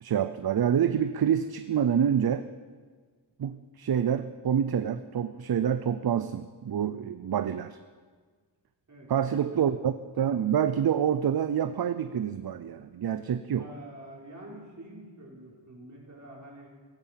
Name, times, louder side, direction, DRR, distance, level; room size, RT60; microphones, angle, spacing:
voice 1, 0.0-2.5 3.4-7.8 9.1-13.7, right 8 dB, 55° right, 11 dB, 0.6 m, -27 dB
voice 2, 13.5-16.7, right 1 dB, 40° right, -3 dB, 4.6 m, -46 dB
16.0 x 15.5 x 5.8 m, 1.5 s
wide cardioid pair, 125°, 44 cm